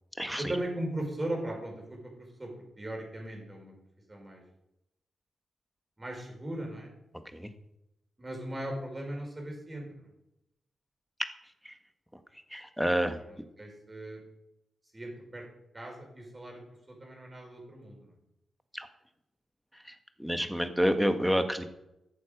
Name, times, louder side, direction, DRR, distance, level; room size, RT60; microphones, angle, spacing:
voice 1, 0.4-3.7 4.1-4.4 6.0-6.9 8.2-10.1 13.2-14.2 14.9-15.4 15.7-16.6 16.9-18.1, right 1 dB, 25° right, 1 dB, 4.9 m, -38 dB
voice 2, 12.5-13.2 18.7-18.9 20.2-21.6, equal, ahead, 8 dB, 1.5 m, -28 dB
14.0 x 7.0 x 5.0 m, 0.86 s
cardioid pair, 60°, 0 cm